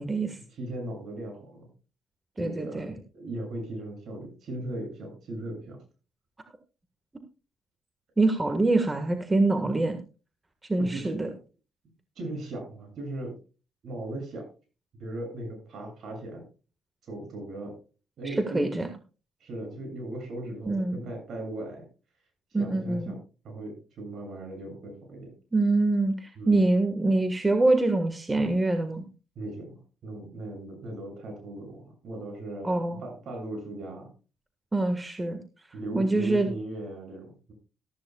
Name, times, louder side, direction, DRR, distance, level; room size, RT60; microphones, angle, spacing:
voice 1, 0.5-1.7 2.4-5.8 10.8-11.2 12.2-13.3 13.8-14.5 15.0-16.4 17.0-17.8 18.2-18.6 19.4-21.9 22.5-23.2 23.4-25.3 26.4-26.6 29.4-34.1 35.7-37.5, right 1 dB, 65° right, 3 dB, 7.4 m, -38 dB
voice 2, 2.4-2.9 8.2-10.0 10.7-11.3 18.2-18.9 20.6-21.0 22.5-23.1 25.5-29.0 32.6-33.0 34.7-35.4 35.9-36.5, right 2 dB, 20° right, 6 dB, 1.5 m, -25 dB
14.0 x 14.0 x 2.3 m, 0.33 s
cardioid pair, 90°, 0 cm